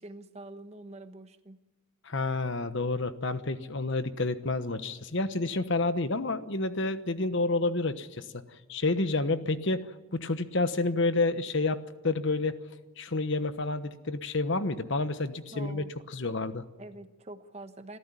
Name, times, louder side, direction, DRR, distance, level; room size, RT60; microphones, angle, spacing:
voice 1, 0.0-1.6 15.5-15.9 16.8-18.0, right 2 dB, 30° right, 9 dB, 1.1 m, -45 dB
voice 2, 2.0-8.4 8.7-9.9 10.1-12.6 13.0-15.8 16.1-16.6, left 3 dB, 55° left, 11 dB, 1.1 m, -29 dB
25.5 x 14.0 x 9.8 m, 1.2 s
head